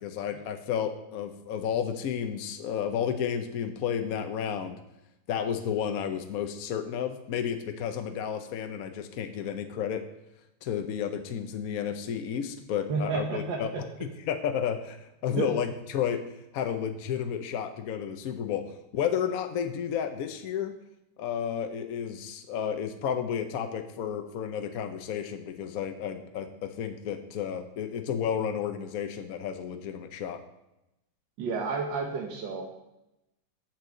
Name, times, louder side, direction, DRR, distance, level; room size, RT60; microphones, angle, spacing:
voice 1, 0.0-4.8 5.3-10.0 10.6-13.7 14.3-16.2 16.5-18.7 18.9-20.7 21.2-30.4, left 8 dB, 65° left, 7 dB, 1.0 m, -32 dB
voice 2, 12.9-13.8 15.4-15.5 31.4-32.6, right 4 dB, 75° right, 0 dB, 1.8 m, -31 dB
6.7 x 6.4 x 7.5 m, 0.91 s
omnidirectional pair, 2.1 m